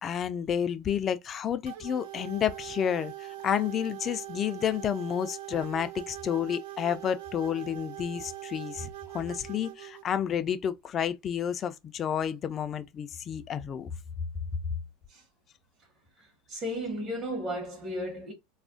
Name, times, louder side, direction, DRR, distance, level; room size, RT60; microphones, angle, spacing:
voice 1, 0.0-13.9, left 9 dB, 35° left, 0.4 m, -30 dB
sound 1, 1.7-10.0, right 16 dB, 70° right, 0.5 m, -42 dB
voice 2, 16.2-18.3, equal, 30° right, 1.0 m, -34 dB
2.5 x 2.1 x 3.6 m
supercardioid pair, 120°, 0 cm